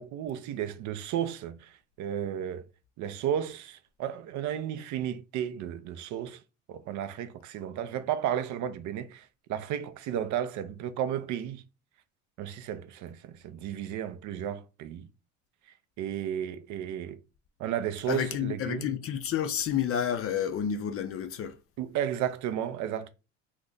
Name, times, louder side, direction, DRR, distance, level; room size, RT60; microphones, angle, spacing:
voice 1, 0.0-2.7 3.0-6.4 6.7-11.6 12.4-15.1 16.0-17.2 17.6-18.9 21.8-23.1, right 10 dB, 50° right, 0.4 m, -33 dB
voice 2, 18.1-21.6, left 9 dB, 35° left, 0.4 m, -30 dB
2.4 x 2.2 x 3.8 m
hypercardioid pair, 80°, 39 cm